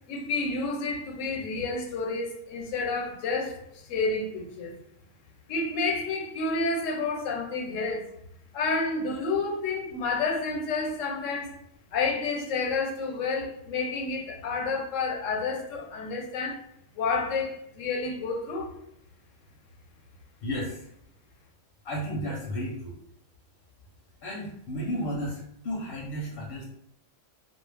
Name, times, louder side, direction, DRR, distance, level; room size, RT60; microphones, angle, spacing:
voice 1, 0.1-4.7 5.5-8.1 8.5-11.6 11.9-16.6 17.0-18.7, left 3 dB, 90° left, 0.9 m, -30 dB
voice 2, 20.4-20.9 21.8-23.0 24.2-26.7, equal, 60° left, 0.6 m, -33 dB
2.3 x 2.0 x 3.2 m
omnidirectional pair, 1.3 m